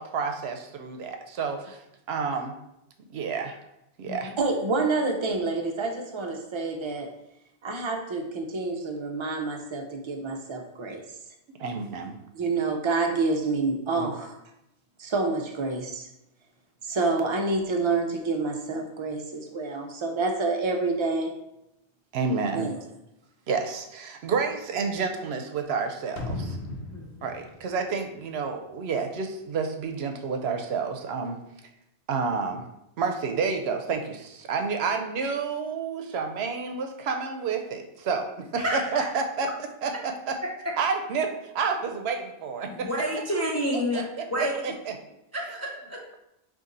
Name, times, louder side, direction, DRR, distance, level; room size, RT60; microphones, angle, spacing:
voice 1, 0.0-1.8 2.1-2.5 3.1-3.6 4.0-4.3 11.6-12.2 14.0-14.1 22.1-22.7 23.5-26.6 27.2-31.4 32.1-32.6 33.0-39.5 39.8-40.4 40.8-42.9 43.7-44.0 44.4-44.9, right 5 dB, 75° right, 4 dB, 0.8 m, -29 dB
voice 2, 4.4-7.1 7.6-11.0 12.3-14.3 15.0-16.1 16.8-21.3 22.5-22.8, right 3 dB, 40° right, 3 dB, 0.5 m, -28 dB
sound 1, 26.2-29.0 29.3-29.4, left 2 dB, 85° left, 0.9 m, -37 dB
voice 3, 26.9-27.3 38.6-39.1 42.7-44.0 44.3-44.5 45.3-46.0, equal, 25° left, -2 dB, 0.3 m, -29 dB
4.1 x 2.6 x 3.8 m, 0.83 s
omnidirectional pair, 1.1 m